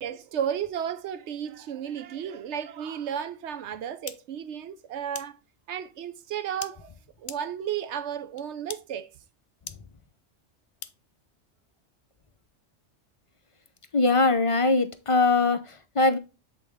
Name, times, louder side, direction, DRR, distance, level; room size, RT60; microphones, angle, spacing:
voice 1, 0.0-5.4 5.7-6.9 7.2-9.1, right 9 dB, 70° right, 1.0 m, -33 dB
sound 1, 4.1-4.2 5.1-5.2 6.6-6.7 7.3-7.4 8.4-8.5 8.7-8.8 9.7-9.8 10.8-10.9, left 8 dB, 60° left, 0.8 m, -37 dB
voice 2, 13.9-16.2, left 3 dB, 35° left, 0.6 m, -22 dB
8.0 x 3.9 x 3.5 m
omnidirectional pair, 1.2 m